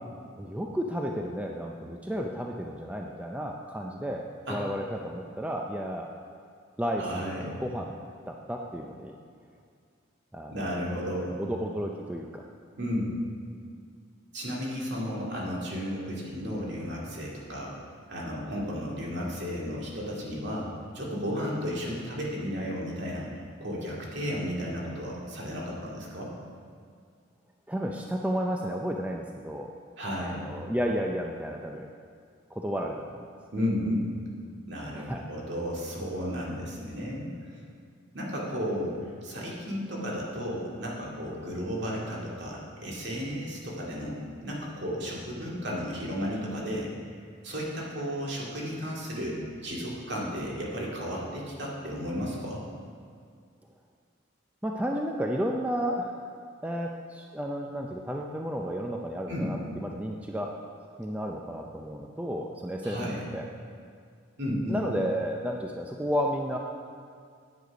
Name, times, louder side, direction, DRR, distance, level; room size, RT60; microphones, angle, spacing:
voice 1, 0.4-4.2 4.5-6.1 6.8-7.9 8.3-9.2 10.3-10.6 11.4-12.4 27.7-29.7 30.2-31.9 32.5-33.3 34.9-35.2 54.6-56.3 56.6-60.5 61.0-63.5 64.7-66.6, equal, 5° right, 1 dB, 0.4 m, -32 dB
voice 2, 7.0-7.6 10.5-11.4 12.8-13.1 14.3-17.8 18.1-20.7 20.9-23.3 23.6-26.3 30.0-30.4 33.5-34.1 34.7-37.6 38.1-46.9 47.4-52.6 59.3-59.5 62.8-63.2 64.4-64.8, equal, 60° right, -4 dB, 2.1 m, -33 dB
9.5 x 8.2 x 5.1 m, 2.2 s
head